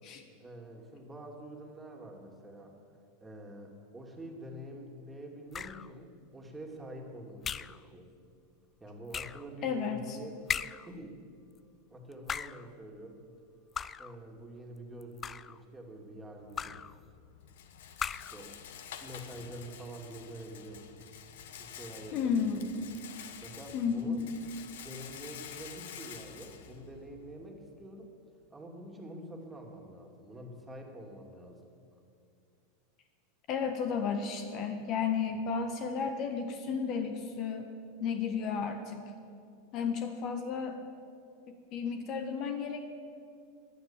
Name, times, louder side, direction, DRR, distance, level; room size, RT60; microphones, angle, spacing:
voice 1, 0.4-2.7 3.2-8.1 8.8-10.4 10.9-11.2 11.9-13.2 14.0-16.8 18.1-18.5 19.0-21.1 21.6-22.8 23.4-24.2 24.8-28.1 28.5-31.6, right 1 dB, 10° right, 1 dB, 2.7 m, -46 dB
sound 1, 5.5-5.9 7.4-7.8 9.1-9.5 10.5-11.0 12.1-12.7 13.8-14.2 15.0-15.6 16.6-17.0 18.0-18.4, left 7 dB, 25° left, 0.3 m, -37 dB
voice 2, 9.6-10.2 22.1-22.7 23.7-24.3 33.5-37.7 38.0-39.0 39.7-40.7 41.5-42.9, left 6 dB, 45° left, 7 dB, 1.4 m, -33 dB
Rattle, 16.4-27.4, left 8 dB, 70° left, 1.1 m, -49 dB
16.0 x 10.5 x 7.5 m, 2.4 s
hypercardioid pair, 100°, 0 cm